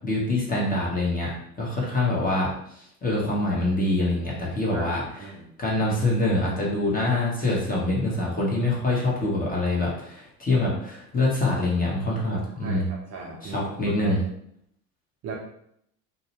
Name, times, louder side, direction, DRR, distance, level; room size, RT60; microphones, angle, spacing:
voice 1, 0.0-2.5 2.8-5.3 5.6-12.8 13.4-14.2, left 2 dB, 20° left, -4 dB, 1.0 m, -25 dB
voice 2, 4.7-5.5 12.6-14.2 15.2-15.4, right 3 dB, 40° right, -1 dB, 0.6 m, -37 dB
2.6 x 2.1 x 2.9 m, 0.71 s
hypercardioid pair, 75°, 46 cm